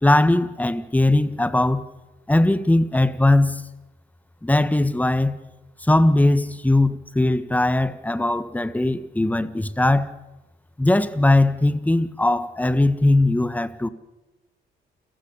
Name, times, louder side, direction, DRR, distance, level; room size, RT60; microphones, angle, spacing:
voice 1, 0.0-1.8 2.3-3.6 4.4-5.4 5.8-10.1 10.8-13.9, left 2 dB, 10° left, 1.3 m, -19 dB
29.0 x 15.5 x 6.9 m
cardioid pair, 90°, 20 cm